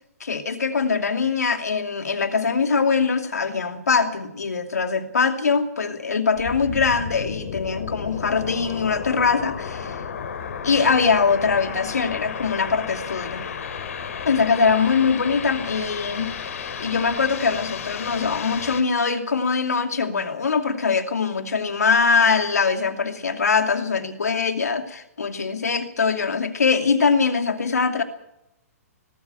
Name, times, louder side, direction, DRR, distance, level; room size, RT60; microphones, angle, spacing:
voice 1, 0.2-10.0 10.6-13.5 14.3-16.3 16.8-28.0, left 5 dB, 85° left, 7 dB, 2.6 m, -22 dB
sound 1, 6.4-18.8, left 7 dB, 65° left, 3.1 m, -33 dB
21.5 x 13.5 x 9.1 m, 0.86 s
hypercardioid pair, 130°, 8 cm